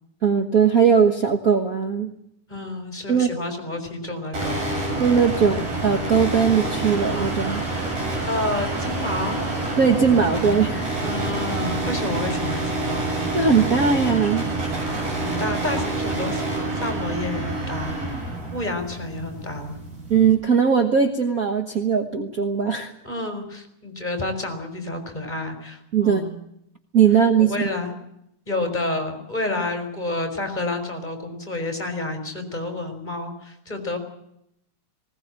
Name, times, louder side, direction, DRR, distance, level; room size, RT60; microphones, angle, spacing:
voice 1, 0.2-2.1 3.1-3.3 5.0-7.6 9.8-10.8 13.3-14.4 20.1-22.9 25.9-26.2 26.9-27.5, right 6 dB, 55° right, 5 dB, 1.0 m, -19 dB
voice 2, 2.5-4.6 8.3-9.4 11.0-13.2 15.1-19.8 23.0-26.4 27.4-27.9 28.5-34.0, left 2 dB, 15° left, 5 dB, 4.0 m, -30 dB
sound 1, 4.3-20.3, right 2 dB, 70° right, 8.1 m, -27 dB
20.0 x 18.0 x 8.8 m, 0.77 s
omnidirectional pair, 3.5 m